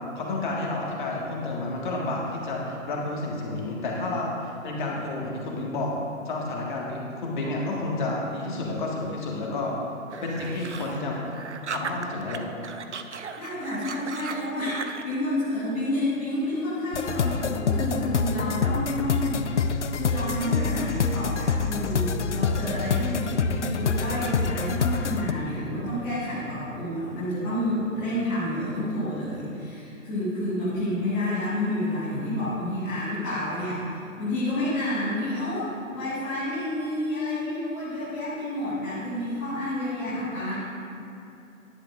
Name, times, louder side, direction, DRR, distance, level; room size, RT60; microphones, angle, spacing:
voice 1, 0.1-6.0 6.2-9.8 10.2-11.2 11.7-12.5, left 2 dB, 35° left, -2 dB, 1.7 m, -30 dB
voice 2, 4.7-5.2 13.4-19.5 19.9-40.5, left 1 dB, 5° left, -12 dB, 0.6 m, -29 dB
sound 1, 10.1-12.4 12.6-15.1, right 6 dB, 55° right, 0.7 m, -37 dB
sound 2, 16.9-25.3, left 5 dB, 60° left, 0.6 m, -26 dB
13.0 x 10.5 x 2.5 m, 2.8 s
figure-of-eight pair, 130°, 41 cm